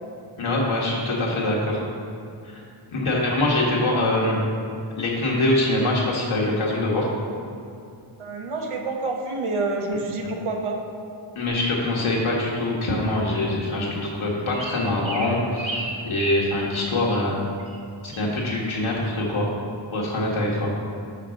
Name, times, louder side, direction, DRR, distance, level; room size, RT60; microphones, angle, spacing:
voice 1, 0.4-1.8 2.4-2.6 2.9-4.4 5.0-7.1 11.3-17.4 18.0-19.5 19.9-20.7, left 1 dB, 80° left, -4 dB, 1.7 m, -24 dB
voice 2, 8.2-10.8, right 3 dB, 85° right, 1 dB, 1.1 m, -28 dB
sound 1, 11.5-11.7 12.6-12.7 13.2-13.4 13.7-13.9 14.5-16.8 17.1-17.2 17.6-17.8 18.1-18.3, right 2 dB, 65° right, 1.1 m, -34 dB
6.1 x 5.7 x 6.4 m, 2.5 s
wide cardioid pair, 115°, 48 cm